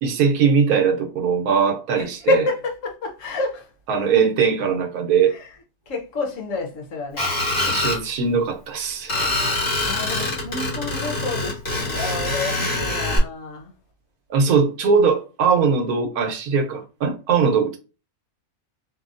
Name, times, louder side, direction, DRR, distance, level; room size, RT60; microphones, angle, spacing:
voice 1, 0.0-2.4 3.9-5.3 7.7-9.3 14.3-17.8, right 6 dB, 85° right, 1.1 m, -20 dB
voice 2, 2.0-3.7 5.3-5.5 5.9-7.3 9.5-13.7, left 2 dB, 65° left, 1.1 m, -28 dB
Screech, 7.2-8.0 9.1-13.2, left 2 dB, 45° left, 1.5 m, -24 dB
2.9 x 2.6 x 2.5 m
omnidirectional pair, 1.5 m